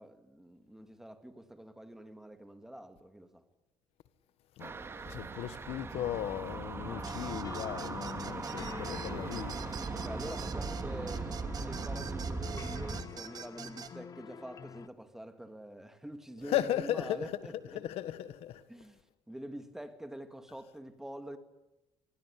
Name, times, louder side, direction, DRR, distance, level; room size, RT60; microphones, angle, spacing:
voice 1, 0.0-3.4 10.0-17.8 18.7-21.4, right 1 dB, 5° right, 2.2 m, -46 dB
Car Sounds Passenger Seat, 4.6-13.0, right 4 dB, 25° right, 2.1 m, -39 dB
voice 2, 5.1-9.5 16.4-17.4 17.7-18.6, left 12 dB, 80° left, 1.6 m, -36 dB
sound 1, 6.8-14.9, left 7 dB, 35° left, 1.0 m, -47 dB
sound 2, 7.0-13.9, right 7 dB, 40° right, 1.7 m, -46 dB
26.5 x 20.5 x 9.9 m
cardioid pair, 140°, 10 cm